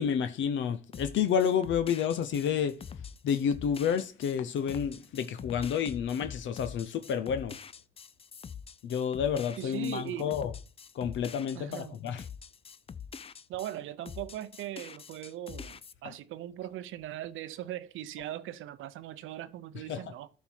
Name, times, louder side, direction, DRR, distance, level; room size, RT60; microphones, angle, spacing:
voice 1, 0.0-2.8 3.2-7.6 8.8-10.5 10.9-12.2 16.0-16.1 19.9-20.1, left 8 dB, 70° left, 0.7 m, -30 dB
sound 1, 0.9-13.8 14.1-15.9, left 7 dB, 30° left, 0.5 m, -45 dB
voice 2, 9.6-10.3 11.5-12.0 13.5-20.3, right 13 dB, 85° right, 0.7 m, -40 dB
12.5 x 4.6 x 4.5 m
cardioid pair, 90°, 20 cm